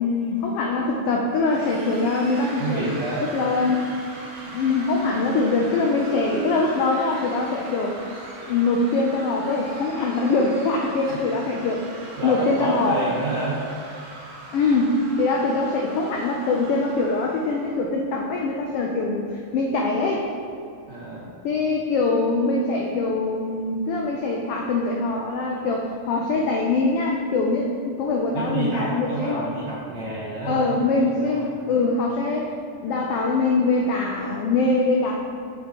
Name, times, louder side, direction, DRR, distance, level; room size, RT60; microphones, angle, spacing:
voice 1, 0.0-2.9 3.3-3.8 4.5-7.9 8.5-11.8 12.2-13.0 14.5-20.3 21.4-29.4 30.4-32.5 32.8-35.2, left 3 dB, 80° left, -1 dB, 1.3 m, -23 dB
sound 1, 1.5-17.8, right 2 dB, 80° right, 3.2 m, -41 dB
voice 2, 2.6-3.3 11.0-11.2 12.2-13.6 20.9-21.3 28.3-30.7 31.0-31.5, right 2 dB, 50° right, -7 dB, 1.4 m, -29 dB
8.6 x 6.8 x 3.0 m, 2.5 s
omnidirectional pair, 3.4 m